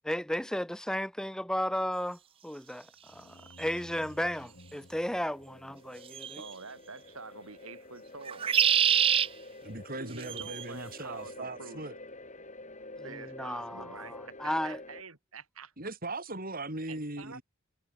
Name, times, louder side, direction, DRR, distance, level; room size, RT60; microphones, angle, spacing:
voice 1, 0.0-6.4 13.0-14.8, equal, 5° left, 0.9 m, -34 dB
sound 1, 3.0-7.6, left 1 dB, 60° left, 4.8 m, -56 dB
sound 2, 3.6-3.7 6.1-6.5 8.3-9.3 10.2-10.6, right 9 dB, 25° right, 0.3 m, -25 dB
sound 3, 4.5-15.0, left 2 dB, 35° left, 5.1 m, -49 dB
voice 2, 6.3-8.6 9.9-11.8 13.0-15.7 16.9-17.4, right 4 dB, 85° right, 4.2 m, -47 dB
voice 3, 9.6-12.0 15.8-17.4, right 2 dB, 45° right, 6.6 m, -39 dB
head